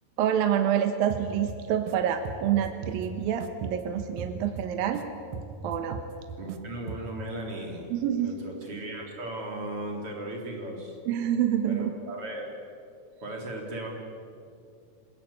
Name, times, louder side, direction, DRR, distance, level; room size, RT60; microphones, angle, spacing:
voice 1, 0.2-5.0 5.6-6.0 7.9-8.3 11.1-11.9, right 9 dB, 70° right, 6 dB, 2.4 m, -27 dB
sound 1, 1.1-1.9 2.2-5.0 5.3-6.6 6.9-7.3, right 4 dB, 85° right, 1.7 m, -39 dB
voice 2, 6.4-11.0 11.6-12.5 13.2-13.9, right 1 dB, 35° right, 0 dB, 3.9 m, -37 dB
27.0 x 18.5 x 8.9 m, 2.4 s
omnidirectional pair, 5.2 m